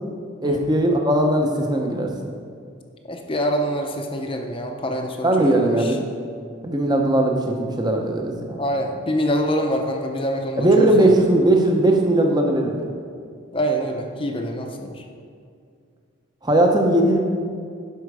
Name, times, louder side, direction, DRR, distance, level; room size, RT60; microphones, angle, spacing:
voice 1, 0.4-2.1 5.2-6.1 6.6-8.6 10.6-12.9 16.4-17.2, right 1 dB, 20° right, 2 dB, 0.8 m, -19 dB
voice 2, 3.0-6.0 8.6-11.2 13.5-15.0, equal, 25° left, 3 dB, 0.7 m, -25 dB
11.5 x 5.1 x 4.8 m, 2.3 s
head